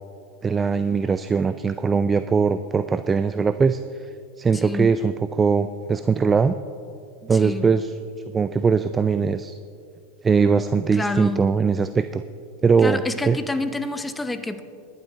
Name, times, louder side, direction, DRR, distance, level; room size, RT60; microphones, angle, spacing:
voice 1, 0.4-4.1 4.4-6.6 7.2-7.9 8.3-9.6 10.2-12.2 12.6-13.4, right 5 dB, 20° right, 12 dB, 0.3 m, -21 dB
voice 2, 4.5-5.0 7.4-7.7 10.9-11.4 12.8-14.6, left 2 dB, 10° left, 10 dB, 0.7 m, -28 dB
20.0 x 11.0 x 2.9 m, 2.4 s
hypercardioid pair, 90°, 0 cm